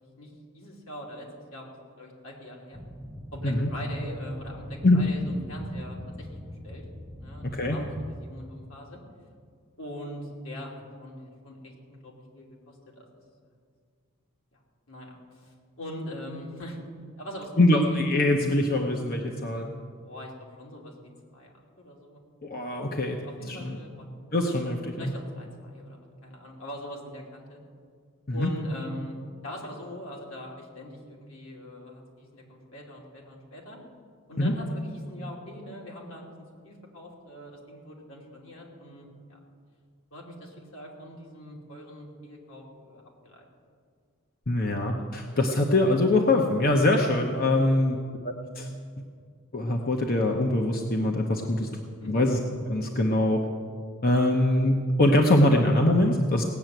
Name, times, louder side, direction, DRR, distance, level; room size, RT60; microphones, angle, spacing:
voice 1, 0.2-1.7 2.0-2.8 3.3-6.3 6.6-6.8 7.2-9.0 9.8-13.1 14.5-14.6 14.9-16.8 17.2-17.6 20.0-20.3 20.6-20.9 21.3-22.2 23.1-24.1 25.0-27.6 28.3-29.2 29.4-33.8 34.3-36.3 36.6-39.4 40.1-43.5 47.1-47.4 52.0-52.2, equal, 80° left, -2 dB, 3.0 m, -42 dB
sound 1, 2.7-8.1, equal, 5° right, 0.7 m, -41 dB
voice 2, 7.4-7.8 17.6-19.7 22.4-23.2 23.5-23.8 24.3-25.1 28.3-28.5 34.4-34.5 44.5-48.0 48.2-48.7 49.5-51.7 52.1-52.4 52.7-53.4 54.0-56.4, left 1 dB, 45° left, 2 dB, 0.9 m, -23 dB
17.5 x 7.1 x 9.1 m, 2.1 s
head